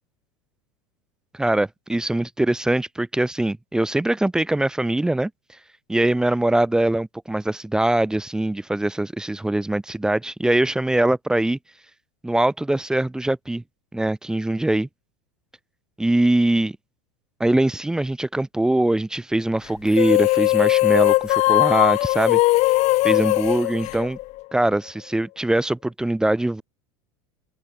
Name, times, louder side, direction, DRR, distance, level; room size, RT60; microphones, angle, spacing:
voice 1, 1.3-5.3 5.9-11.6 12.2-13.6 13.9-14.9 16.0-16.8 17.4-22.4 23.0-24.2 24.5-26.6, right 1 dB, 5° right, 0.4 m, -22 dB
sound 1, 19.9-24.6, left 19 dB, 50° left, 1.1 m, -19 dB
open air
supercardioid pair, 115°, 15 cm